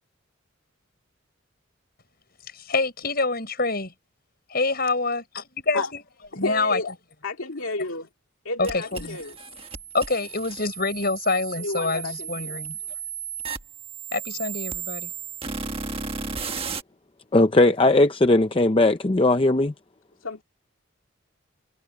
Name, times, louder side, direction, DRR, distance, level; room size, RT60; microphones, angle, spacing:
voice 1, 2.5-3.9 4.5-6.0 6.4-6.8 8.6-9.2 9.9-12.8 14.1-15.1, left 3 dB, 50° left, 7.4 m, -26 dB
voice 2, 6.4-6.9 7.2-8.1 8.4-9.3 11.6-12.6 20.2-20.4, left 2 dB, 90° left, 2.4 m, -31 dB
sound 1, 8.6-16.8, right 6 dB, 25° right, 1.5 m, -34 dB
voice 3, 17.3-19.7, left 2 dB, 25° left, 0.6 m, -18 dB
head